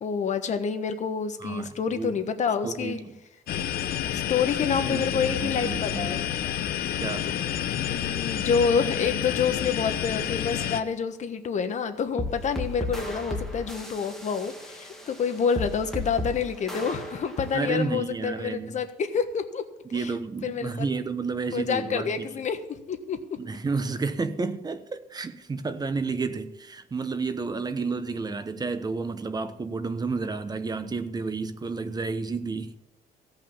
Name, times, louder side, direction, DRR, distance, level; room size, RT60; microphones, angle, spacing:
voice 1, 0.0-3.0 4.3-6.2 7.8-19.6 19.9-20.1 20.4-20.8 21.5-23.2, left 6 dB, 45° left, 1.3 m, -28 dB
voice 2, 1.4-2.1 2.6-3.2 4.4-4.6 4.9-6.2 7.0-7.3 17.5-18.8 19.9-22.3 23.4-32.7, right 4 dB, 25° right, 1.0 m, -31 dB
sound 1, 3.5-10.8, left 10 dB, 65° left, 1.0 m, -29 dB
sound 2, 12.2-17.8, left 1 dB, ahead, 2.4 m, -35 dB
16.5 x 5.7 x 7.1 m
cardioid pair, 110°, 17 cm